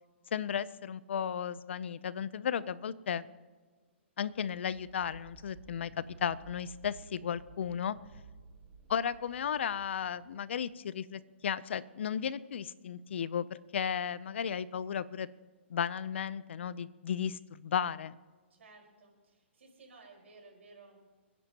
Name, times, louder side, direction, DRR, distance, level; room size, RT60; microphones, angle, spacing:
voice 1, 0.3-3.3 4.2-8.0 8.9-15.3 15.7-18.1, left 8 dB, 65° left, 18 dB, 0.6 m, -34 dB
sound 1, 4.3-10.7, right 3 dB, 45° right, 5.2 m, -55 dB
voice 2, 18.5-21.0, right 3 dB, 90° right, 0 dB, 4.8 m, -56 dB
26.5 x 10.5 x 3.0 m, 1.4 s
hypercardioid pair, 165°, 7 cm